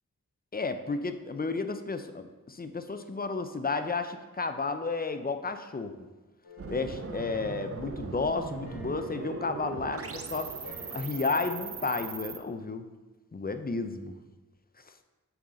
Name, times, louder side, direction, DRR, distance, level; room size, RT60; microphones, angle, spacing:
voice 1, 0.5-5.9 6.7-10.5 10.9-12.8 13.3-14.1, left 4 dB, 25° left, 8 dB, 0.5 m, -32 dB
sound 1, 6.4-8.0 8.5-11.6, left 1 dB, 80° left, 1.3 m, -50 dB
sound 2, 6.6-12.4, right 5 dB, 40° right, 0.5 m, -39 dB
7.0 x 3.9 x 3.8 m, 1.2 s
wide cardioid pair, 50°, 36 cm